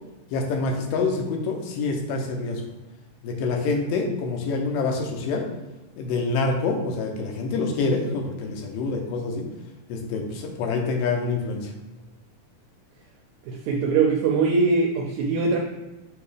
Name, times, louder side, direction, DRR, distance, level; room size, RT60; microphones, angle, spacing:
voice 1, 0.3-2.6 3.2-5.5 6.0-9.5 9.9-11.7, left 3 dB, 80° left, 3 dB, 2.5 m, -26 dB
voice 2, 13.5-15.6, right 4 dB, 80° right, 0 dB, 1.6 m, -22 dB
6.7 x 2.9 x 4.9 m, 1.1 s
omnidirectional pair, 3.9 m